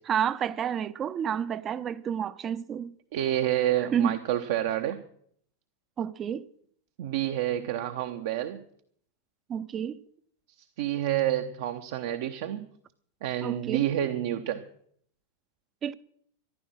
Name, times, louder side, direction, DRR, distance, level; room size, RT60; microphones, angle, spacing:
voice 1, 0.1-2.9 3.9-4.2 6.0-6.5 9.5-10.0 13.4-13.9 15.8-15.9, right 8 dB, 25° right, 0.7 m, -30 dB
voice 2, 3.1-5.0 7.0-8.6 10.8-12.7 13.2-14.7, right 12 dB, 55° right, 0.8 m, -28 dB
14.0 x 11.5 x 6.2 m
figure-of-eight pair, 90°, 0 cm